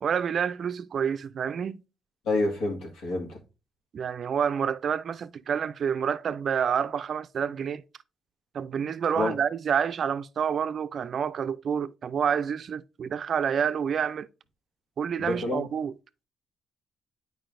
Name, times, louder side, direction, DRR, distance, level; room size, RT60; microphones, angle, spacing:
voice 1, 0.0-1.8 3.9-7.8 8.5-14.3 15.0-15.9, right 7 dB, 55° right, 0.4 m, -28 dB
voice 2, 2.2-3.3 9.1-9.3 15.2-15.7, left 2 dB, 80° left, 1.6 m, -28 dB
9.1 x 4.7 x 2.5 m
cardioid pair, 90°, 0 cm